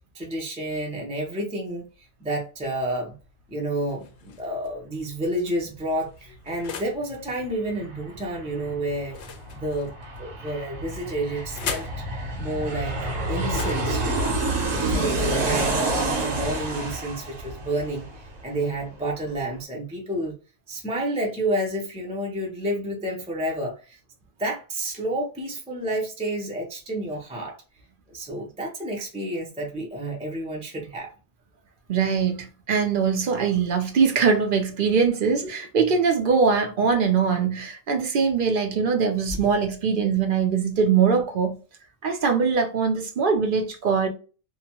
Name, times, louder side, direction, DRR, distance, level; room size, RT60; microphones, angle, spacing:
voice 1, 0.1-3.1 3.5-9.2 9.5-11.9 12.4-13.0 13.3-14.4 14.8-18.1 18.4-20.3 20.7-24.0 24.4-27.6 28.1-31.1, right 1 dB, 10° right, 0.5 m, -30 dB
sound 1, 3.9-4.7 5.4-7.1 9.0-10.2 11.0-12.0 13.4-15.3, left 7 dB, 65° left, 0.8 m, -39 dB
Aircraft, 7.1-7.2 7.5-18.8 19.1-19.2, right 2 dB, 80° right, 1.3 m, -28 dB
voice 2, 31.9-41.6 42.0-44.1, right 5 dB, 55° right, 0.7 m, -22 dB
2.8 x 2.2 x 2.8 m
omnidirectional pair, 1.3 m